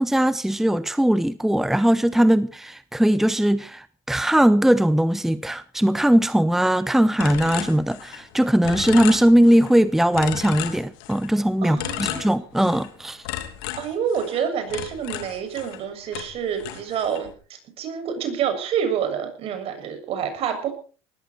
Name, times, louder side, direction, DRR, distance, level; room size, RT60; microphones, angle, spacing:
voice 1, 0.0-13.2, right 1 dB, 5° right, 0.9 m, -20 dB
sound 1, 7.2-8.3 8.6-9.7 10.1-11.3 11.8-12.9 13.2-15.8 16.1-17.3, left 12 dB, 80° left, 2.8 m, -33 dB
voice 2, 11.6-12.3 13.8-20.7, right 8 dB, 55° right, 6.9 m, -28 dB
19.5 x 14.5 x 4.4 m
supercardioid pair, 95°, 12 cm